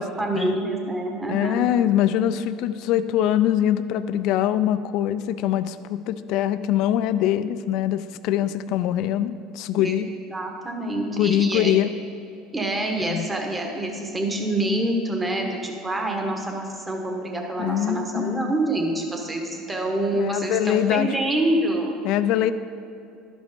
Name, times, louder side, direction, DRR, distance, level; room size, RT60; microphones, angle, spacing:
voice 1, 0.0-1.8 9.8-10.0 10.3-11.7 12.5-22.0, right 1 dB, 15° right, 1 dB, 1.4 m, -26 dB
voice 2, 1.3-10.1 11.2-11.9 13.0-13.3 17.6-18.5 20.1-21.1 22.0-22.5, left 11 dB, 65° left, 13 dB, 0.4 m, -23 dB
11.5 x 5.2 x 5.1 m, 2.5 s
supercardioid pair, 100°, 0 cm